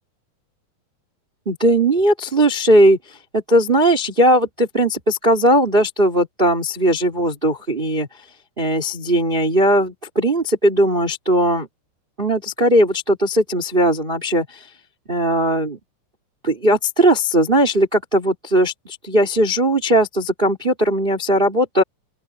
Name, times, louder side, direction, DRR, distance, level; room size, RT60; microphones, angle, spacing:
voice 1, 1.5-8.1 8.6-11.7 12.2-14.7 15.1-15.8 16.4-21.8, right 1 dB, 15° right, 2.2 m, -18 dB
open air
omnidirectional pair, 5.5 m